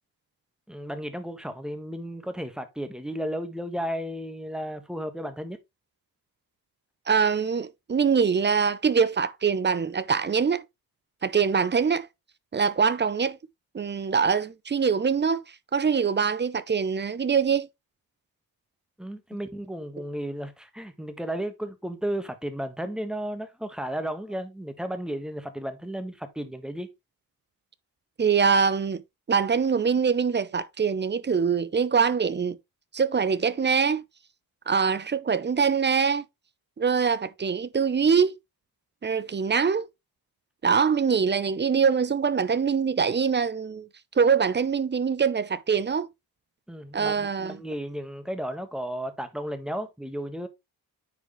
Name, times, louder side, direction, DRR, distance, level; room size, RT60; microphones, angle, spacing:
voice 1, 0.7-5.6 19.0-26.9 46.7-50.5, equal, ahead, 1.4 m, -34 dB
voice 2, 7.1-10.6 11.2-12.1 12.5-13.4 13.7-15.4 15.7-17.7 28.2-29.0 29.3-32.6 32.9-34.0 34.7-36.2 36.8-38.4 39.0-39.9 40.6-43.9 44.2-46.1 46.9-47.6, right 6 dB, 30° right, 0.6 m, -23 dB
9.4 x 4.8 x 3.1 m
cardioid pair, 105°, 39 cm